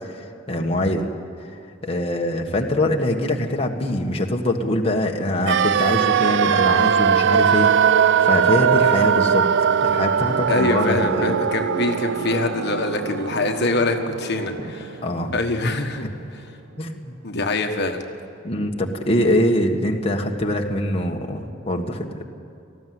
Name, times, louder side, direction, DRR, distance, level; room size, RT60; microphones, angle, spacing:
voice 1, 0.1-1.1 1.8-7.7 8.2-9.5 9.8-11.5 14.6-14.7 15.0-15.3 16.8-17.1 18.4-22.2, left 1 dB, 30° left, 1 dB, 1.5 m, -23 dB
sound 1, 5.5-15.4 15.7-15.8, right 7 dB, 65° right, 0.4 m, -20 dB
voice 2, 10.5-15.0 15.3-16.1 17.2-18.0, left 2 dB, 60° left, 4 dB, 1.4 m, -24 dB
19.0 x 14.5 x 9.4 m, 2.7 s
head